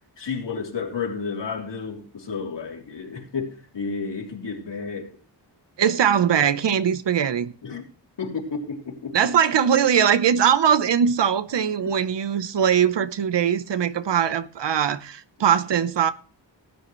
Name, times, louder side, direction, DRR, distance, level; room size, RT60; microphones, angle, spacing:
voice 1, 0.2-5.2 7.6-7.9 8.2-9.3 11.8-12.0, left 5 dB, 75° left, 3.4 m, -32 dB
voice 2, 5.8-7.5 9.1-16.1, right 8 dB, 75° right, 0.9 m, -21 dB
18.5 x 9.6 x 3.2 m
wide cardioid pair, 180°, 43 cm